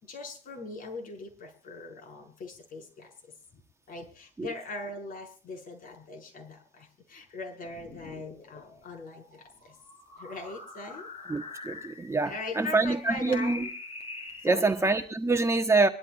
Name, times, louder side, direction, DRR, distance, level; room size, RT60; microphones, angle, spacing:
voice 1, 0.0-3.6 3.9-9.8 10.2-11.1 12.3-13.7 14.4-14.7, left 3 dB, 55° left, 5.4 m, -41 dB
sound 1, 7.6-15.0, left 3 dB, 35° left, 5.1 m, -45 dB
voice 2, 11.3-13.7 14.4-15.9, right 3 dB, 15° right, 1.2 m, -26 dB
24.5 x 12.5 x 2.5 m
cardioid pair, 110°, 17 cm